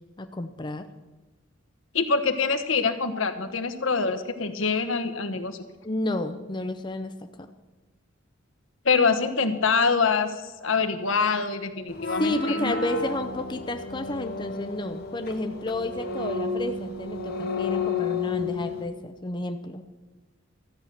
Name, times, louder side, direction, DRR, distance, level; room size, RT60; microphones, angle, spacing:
voice 1, 0.2-0.9 5.8-7.5 12.0-19.8, left 1 dB, 20° left, 7 dB, 0.6 m, -31 dB
voice 2, 1.9-5.6 8.8-12.8, left 4 dB, 75° left, 8 dB, 1.1 m, -25 dB
sound 1, 11.9-18.8, left 4 dB, 50° left, 1.2 m, -31 dB
13.5 x 9.2 x 6.6 m, 1.2 s
head